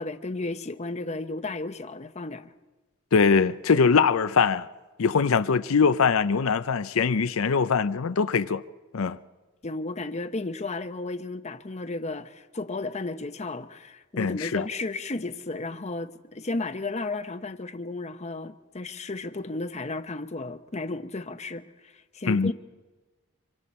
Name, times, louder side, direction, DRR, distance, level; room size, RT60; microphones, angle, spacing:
voice 1, 0.0-2.5 9.6-22.5, left 2 dB, 35° left, 0.8 m, -33 dB
voice 2, 3.1-4.7 5.0-8.6 8.9-9.2 14.2-14.6 22.3-22.5, left 5 dB, 85° left, 0.6 m, -22 dB
25.0 x 24.5 x 4.3 m
head